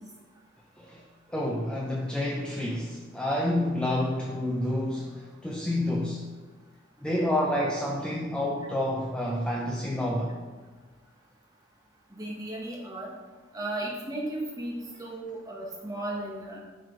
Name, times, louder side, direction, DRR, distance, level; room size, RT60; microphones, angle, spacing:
voice 1, 1.3-6.2 7.0-10.4, left 1 dB, 5° left, -3 dB, 0.5 m, -29 dB
voice 2, 12.1-13.1 13.5-16.6, right 1 dB, 20° right, -3 dB, 1.2 m, -35 dB
7.6 x 3.4 x 4.9 m, 1.4 s
head